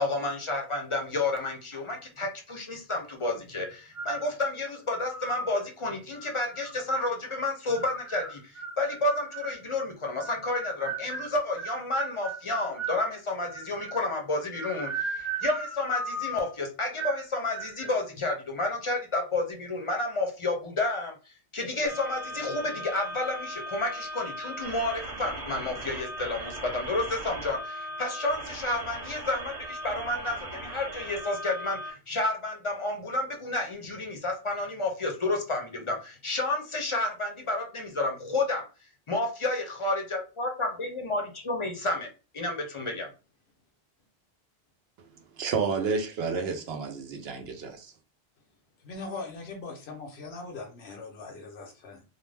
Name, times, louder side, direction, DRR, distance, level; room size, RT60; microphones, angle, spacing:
voice 1, 0.0-38.6 39.1-42.1 42.3-43.1, left 2 dB, 40° left, 0.5 m, -30 dB
sound 1, 3.9-4.4 4.9-5.5 6.1-7.1 7.7-9.6 10.2-13.0 13.5-14.1 14.5-16.5 17.0-17.3 17.5-18.0, right 3 dB, 20° right, 0.5 m, -37 dB
sound 2, 21.9-31.9, right 1 dB, 45° right, 1.0 m, -38 dB
voice 2, 45.4-47.9, right 5 dB, 75° right, 0.8 m, -30 dB
voice 3, 48.8-52.0, left 3 dB, 85° left, 0.9 m, -40 dB
2.5 x 2.1 x 3.2 m
omnidirectional pair, 1.0 m